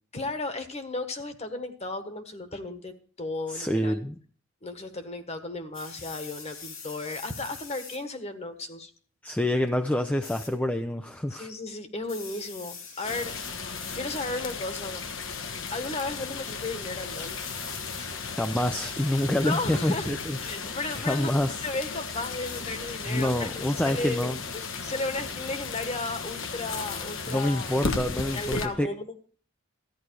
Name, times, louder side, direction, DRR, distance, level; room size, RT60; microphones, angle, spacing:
voice 1, 0.1-3.9 4.6-8.9 11.3-13.3 13.9-15.0 15.3-17.4 18.0-18.1 19.4-20.1 20.4-27.8 28.1-29.1, left 2 dB, 30° left, 9 dB, 1.5 m, -34 dB
voice 2, 3.5-4.1 9.2-11.5 18.4-20.4 20.9-21.6 23.1-24.4 27.3-28.9, left 1 dB, 5° left, 6 dB, 0.5 m, -27 dB
sound 1, 5.7-8.0 10.2-10.5 12.0-13.5 13.8-14.3 15.1-15.4 17.1-18.0 20.4-20.6 22.4-22.6, left 5 dB, 85° left, 3.3 m, -43 dB
sound 2, 13.0-28.7, left 4 dB, 70° left, 1.3 m, -35 dB
14.0 x 10.0 x 4.7 m, 0.43 s
head